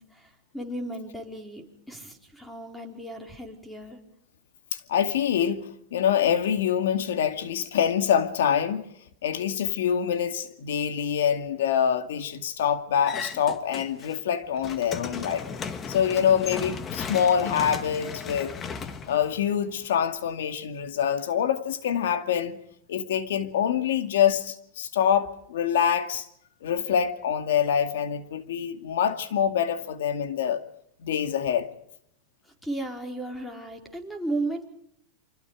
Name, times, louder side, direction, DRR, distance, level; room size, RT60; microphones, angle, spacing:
voice 1, 0.0-4.0 32.6-34.6, right 2 dB, 5° left, 4.6 m, -35 dB
voice 2, 4.7-8.9 9.2-15.5 15.9-18.6 19.1-22.6 22.9-26.3 26.6-30.6 31.0-31.7, left 8 dB, 80° left, 2.3 m, -25 dB
sound 1, 13.0-14.2 14.5-19.8, left 6 dB, 25° left, 1.8 m, -36 dB
28.5 x 25.0 x 5.0 m
supercardioid pair, 125°, 0 cm